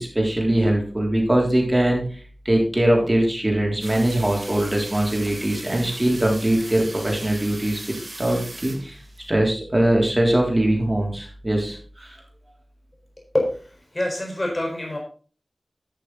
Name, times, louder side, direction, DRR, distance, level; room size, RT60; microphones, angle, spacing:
voice 1, 0.0-2.0 2.5-7.8 8.2-9.0 9.3-12.2, right 1 dB, 25° right, 0 dB, 3.5 m, -21 dB
sound 1, 3.8-9.3, right 2 dB, 50° right, 1.7 m, -38 dB
voice 2, 13.3-15.0, left 1 dB, 30° left, 0 dB, 4.6 m, -26 dB
11.5 x 6.5 x 4.0 m, 0.41 s
wide cardioid pair, 70°, 0 cm